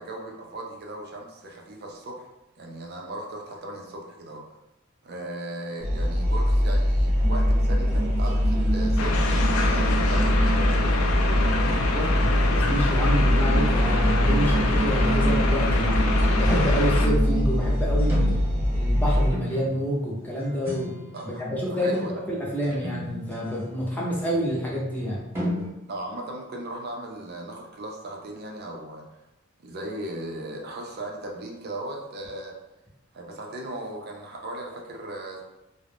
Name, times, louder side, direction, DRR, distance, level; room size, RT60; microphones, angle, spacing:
voice 1, 0.0-2.2 2.6-4.4 5.0-9.3 9.6-11.3 21.1-21.4 21.7-22.2 25.9-29.1 29.6-32.6 33.1-35.4, right 1 dB, 50° right, 0 dB, 0.5 m, -37 dB
sound 1, 5.8-19.3, equal, 85° right, 0.7 m, -22 dB
sound 2, 7.1-7.5 7.9-9.4 9.8-10.1 11.7-11.8 12.5-13.2 13.8-14.2 14.5-25.7, equal, 10° right, 0.9 m, -37 dB
sound 3, 9.0-17.1, left 3 dB, 90° left, 0.4 m, -27 dB
voice 2, 11.6-16.0 16.4-18.4 18.7-20.9 21.2-22.0 22.3-25.2, equal, 10° left, -5 dB, 0.6 m, -28 dB
2.4 x 2.0 x 3.4 m, 0.92 s
head